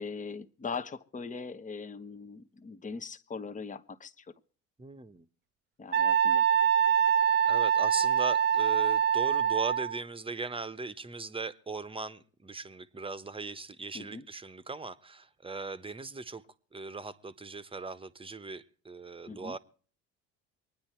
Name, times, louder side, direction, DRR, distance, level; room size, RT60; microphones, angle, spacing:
voice 1, 0.0-4.3 5.8-6.5 13.9-14.3 19.3-19.6, left 5 dB, 20° left, 1.0 m, -40 dB
voice 2, 4.8-5.3 7.5-16.4 16.7-19.6, right 3 dB, 15° right, 1.1 m, -39 dB
Wind instrument woodwind instrument, 5.9-10.0, right 8 dB, 30° right, 0.6 m, -25 dB
23.5 x 9.8 x 4.5 m
supercardioid pair, 80°, 34 cm